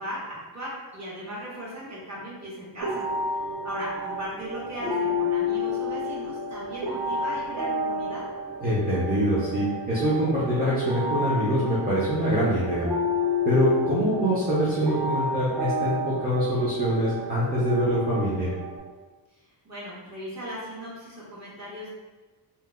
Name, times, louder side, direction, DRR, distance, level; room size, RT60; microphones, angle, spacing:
voice 1, 0.0-3.1 3.4-8.2 19.3-21.9, equal, 35° right, -7 dB, 1.1 m, -37 dB
sound 1, 2.8-18.8, left 2 dB, 65° right, 0.9 m, -30 dB
voice 2, 8.6-12.9 13.5-18.5, equal, 20° right, -9 dB, 0.5 m, -24 dB
2.8 x 2.1 x 3.5 m, 1.2 s
wide cardioid pair, 170°, 44 cm